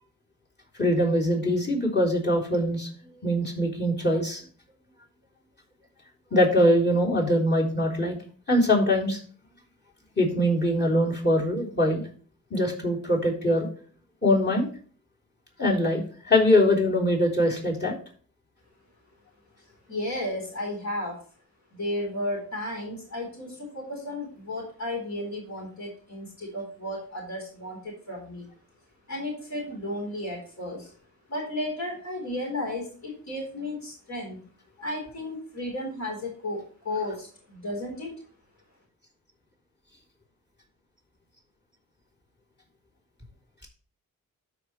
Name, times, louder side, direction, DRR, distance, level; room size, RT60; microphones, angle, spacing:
voice 1, 0.8-2.9 3.2-4.4 6.3-8.2 8.5-9.2 10.2-12.0 12.5-13.7 14.2-14.7 15.6-17.9, left 1 dB, 30° left, -3 dB, 3.5 m, -23 dB
voice 2, 19.9-21.2 21.7-28.5 29.1-30.9 31.3-34.5 34.8-38.2, left 1 dB, 55° left, -3 dB, 4.1 m, -33 dB
13.0 x 4.8 x 3.2 m, 0.42 s
cardioid pair, 85°, 34 cm